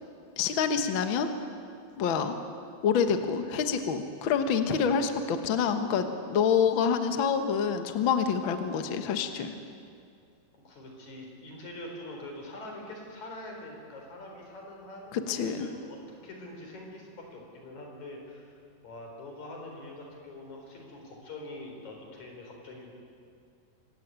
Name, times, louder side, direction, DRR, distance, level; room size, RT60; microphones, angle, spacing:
voice 1, 0.4-1.3 2.0-2.4 2.8-9.5 15.1-15.7, left 6 dB, 80° left, 7 dB, 1.1 m, -27 dB
voice 2, 10.5-15.1 15.4-18.6 18.8-23.0, left 1 dB, 50° left, 1 dB, 5.4 m, -44 dB
25.5 x 16.0 x 9.4 m, 2.4 s
omnidirectional pair, 4.2 m